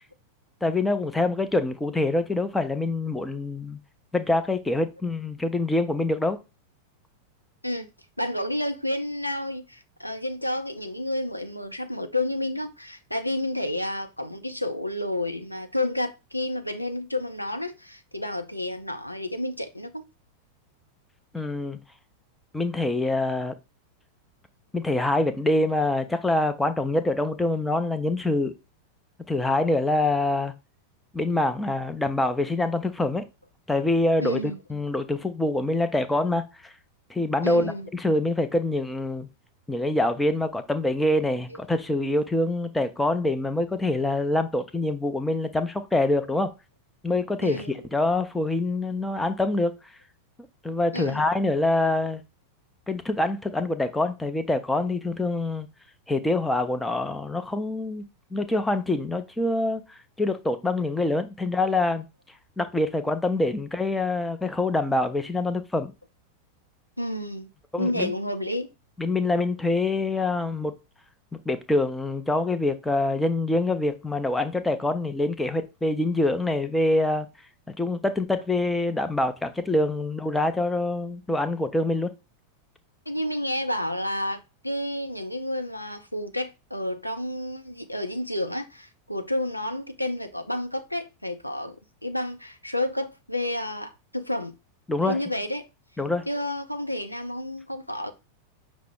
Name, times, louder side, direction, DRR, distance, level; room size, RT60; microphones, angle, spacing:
voice 1, 0.6-3.8 4.1-6.4 21.3-21.8 22.5-23.5 24.7-28.5 29.3-30.5 31.1-33.2 33.7-36.7 37.1-39.3 39.7-46.5 47.0-49.7 50.6-52.2 52.9-55.7 56.1-58.0 58.3-62.1 62.6-65.9 67.7-68.1 69.0-70.7 71.3-77.3 77.8-82.1 94.9-95.2 96.0-96.2, left 2 dB, 5° left, 0.5 m, -25 dB
voice 2, 8.2-20.0 34.2-34.6 37.4-37.9 47.4-47.9 50.9-51.2 67.0-67.5 67.8-68.7 83.1-94.6 95.0-95.7 96.3-98.1, left 1 dB, 90° left, 0.5 m, -30 dB
5.7 x 2.0 x 3.6 m
figure-of-eight pair, 90°, 0 cm